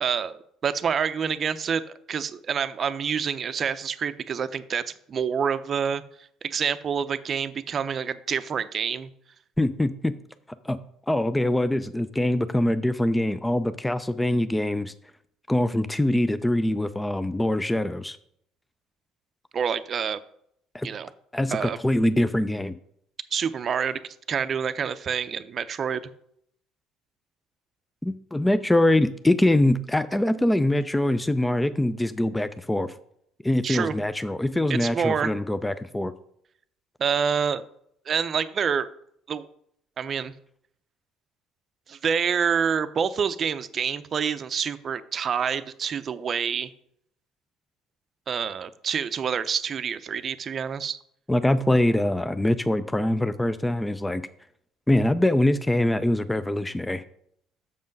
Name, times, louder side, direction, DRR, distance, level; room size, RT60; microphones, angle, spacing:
voice 1, 0.0-6.0 6.4-9.1 19.5-20.2 20.8-21.1 21.5-21.8 23.3-24.0 24.3-26.1 33.6-34.0 34.7-35.3 37.0-37.6 38.1-38.9 39.3-39.5 40.0-40.3 41.9-46.7 48.3-51.0, right 7 dB, 45° right, 12 dB, 0.5 m, -27 dB
voice 2, 9.6-10.1 10.6-10.8 11.1-14.9 15.5-18.2 20.7-20.9 21.3-22.8 28.0-32.9 33.4-36.1 51.3-54.2 54.9-57.0, left 1 dB, 10° left, 13 dB, 0.4 m, -23 dB
6.9 x 5.3 x 5.3 m, 0.70 s
hypercardioid pair, 70°, 0 cm